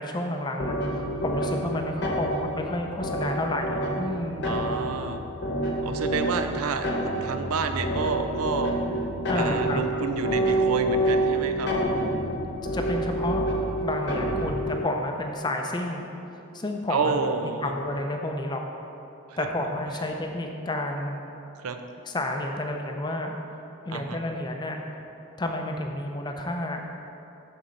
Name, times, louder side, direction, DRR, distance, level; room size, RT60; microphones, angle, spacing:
voice 1, 0.0-4.4 9.3-9.8 12.7-13.5 13.8-16.1 16.5-17.1 17.6-18.6 19.4-21.2 22.0-23.3 23.9-24.8 25.4-26.8, left 1 dB, 20° left, 3 dB, 0.5 m, -30 dB
sound 1, 0.6-14.7, right 1 dB, 55° left, 1.1 m, -28 dB
voice 2, 4.4-5.2 5.8-8.7 9.3-11.7 16.9-17.7 19.3-19.5 21.6-21.8 23.9-24.2, right 4 dB, 90° right, 7 dB, 0.5 m, -29 dB
11.5 x 4.3 x 4.0 m, 2.9 s
head